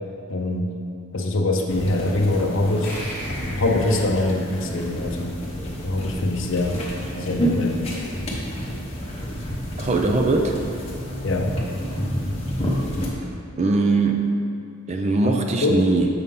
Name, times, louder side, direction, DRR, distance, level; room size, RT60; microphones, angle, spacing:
voice 1, 0.3-0.7 1.1-2.9 3.2-5.3 5.8-6.8 7.1-7.8 11.2-11.5 15.2-15.8, left 2 dB, 60° left, 3 dB, 0.6 m, -24 dB
sound 1, 1.7-13.1, equal, 25° left, 0.9 m, -29 dB
sound 2, 2.8-5.9, equal, 10° left, 1.7 m, -38 dB
voice 2, 9.8-10.6 13.6-14.3 14.9-16.1, right 3 dB, 30° right, 3 dB, 0.4 m, -20 dB
6.9 x 5.3 x 3.7 m, 2.4 s
head